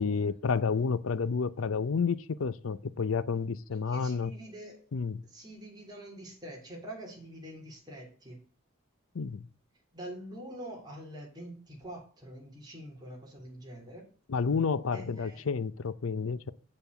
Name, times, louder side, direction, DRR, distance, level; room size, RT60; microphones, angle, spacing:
voice 1, 0.0-4.3 4.9-5.2 9.1-9.4 14.3-16.5, left 5 dB, 75° left, 0.5 m, -30 dB
voice 2, 3.9-4.9 5.2-8.4 9.9-14.1 14.9-15.4, right 1 dB, 20° right, 3.4 m, -45 dB
8.8 x 7.0 x 6.6 m
head